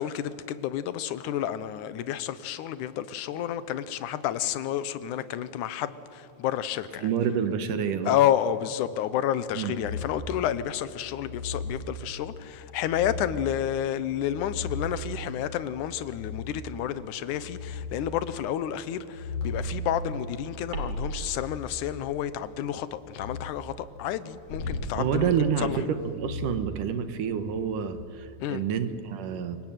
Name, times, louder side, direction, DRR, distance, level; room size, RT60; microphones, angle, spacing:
voice 1, 0.0-7.1 8.1-25.3 25.6-25.8 28.4-28.6, left 11 dB, 75° left, 2.4 m, -30 dB
voice 2, 7.0-8.1 9.6-9.7 25.0-25.8 26.2-29.6, right 7 dB, 85° right, 3.0 m, -28 dB
sound 1, 9.8-10.3 11.1-11.9 12.8-13.5 14.1-15.2 16.1-16.7 17.1-18.0 19.0-21.7 23.1-23.6 24.5-24.9 26.1-27.3 27.8-28.0, left 2 dB, 60° left, 6.2 m, -37 dB
sound 2, 20.7-25.6, right 1 dB, 65° right, 3.9 m, -41 dB
27.0 x 24.0 x 9.1 m
omnidirectional pair, 3.7 m